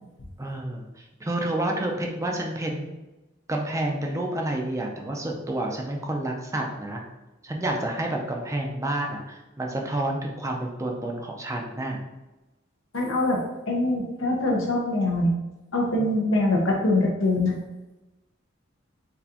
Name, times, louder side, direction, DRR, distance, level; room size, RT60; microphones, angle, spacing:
voice 1, 0.4-3.0 3.5-7.0 7.4-12.0 16.0-16.4, right 1 dB, 15° right, 1 dB, 0.5 m, -29 dB
voice 2, 12.9-15.3 15.7-17.5, left 2 dB, 85° left, -1 dB, 1.0 m, -23 dB
4.0 x 3.8 x 2.9 m, 1.0 s
head